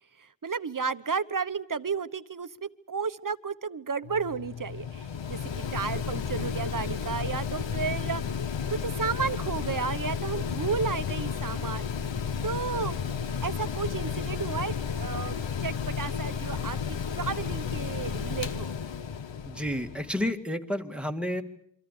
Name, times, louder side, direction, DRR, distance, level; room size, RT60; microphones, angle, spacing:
voice 1, 0.4-8.2 8.7-11.9 12.4-13.1 13.4-18.8, right 5 dB, 45° right, 1.1 m, -33 dB
Mechanical fan, 4.0-20.3, left 7 dB, 75° left, 1.1 m, -32 dB
voice 2, 19.5-21.4, left 1 dB, ahead, 2.1 m, -30 dB
27.5 x 25.0 x 6.7 m
wide cardioid pair, 75°, 45 cm